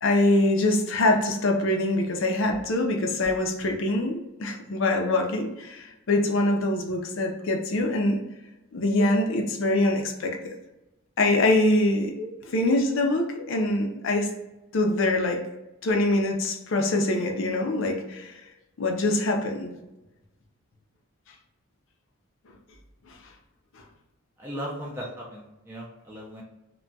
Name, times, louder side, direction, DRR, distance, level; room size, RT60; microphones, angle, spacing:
voice 1, 0.0-8.2 8.7-10.4 11.2-14.3 14.7-15.4 15.8-18.4 18.8-19.7, left 2 dB, 65° left, 3 dB, 0.5 m, -24 dB
voice 2, 24.4-26.4, equal, 10° right, -4 dB, 0.4 m, -37 dB
2.2 x 2.2 x 3.9 m, 0.98 s
head